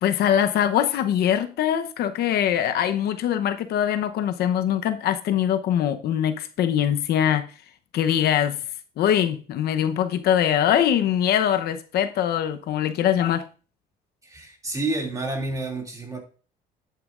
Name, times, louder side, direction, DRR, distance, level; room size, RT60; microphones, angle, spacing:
voice 1, 0.0-7.4 7.9-8.6 9.0-13.4, left 10 dB, 70° left, 0.9 m, -22 dB
voice 2, 14.2-16.2, right 2 dB, 20° right, 2.6 m, -29 dB
11.0 x 8.6 x 2.5 m
cardioid pair, 110°, 17 cm